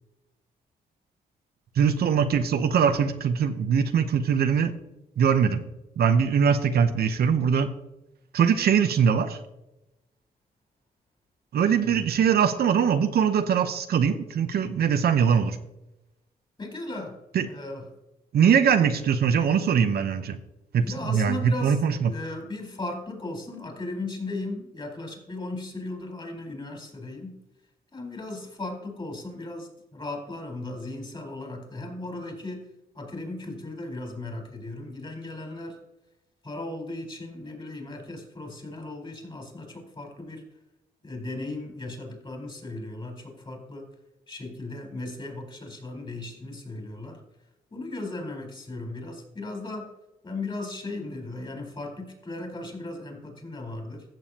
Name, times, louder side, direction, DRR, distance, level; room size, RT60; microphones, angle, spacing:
voice 1, 1.8-4.7 5.2-5.6 6.0-7.7 8.3-9.4 11.5-15.6 17.3-17.5 18.3-20.4 20.7-22.1, right 7 dB, 70° right, 8 dB, 0.8 m, -22 dB
voice 2, 16.6-17.9 20.8-27.4 27.9-32.6 32.9-35.8 36.4-40.4 41.0-43.9 44.3-47.2 47.7-49.9 50.2-54.0, left 2 dB, 30° left, 2 dB, 4.0 m, -36 dB
15.5 x 7.1 x 2.9 m, 0.93 s
cardioid pair, 85°, 16 cm